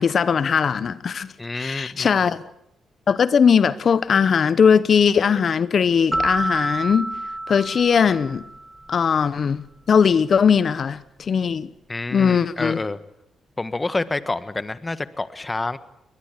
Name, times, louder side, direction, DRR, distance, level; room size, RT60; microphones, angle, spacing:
voice 1, 0.0-1.3 1.5-2.4 3.1-7.1 7.5-8.4 8.9-11.7 12.1-12.8, left 6 dB, 55° left, 0.9 m, -19 dB
voice 2, 1.4-2.1 11.9-13.0 13.6-15.8, left 2 dB, 25° left, 1.4 m, -28 dB
sound 1, 6.1-8.9, right 1 dB, 10° right, 2.7 m, -28 dB
22.5 x 20.0 x 8.3 m
cardioid pair, 70°, 0 cm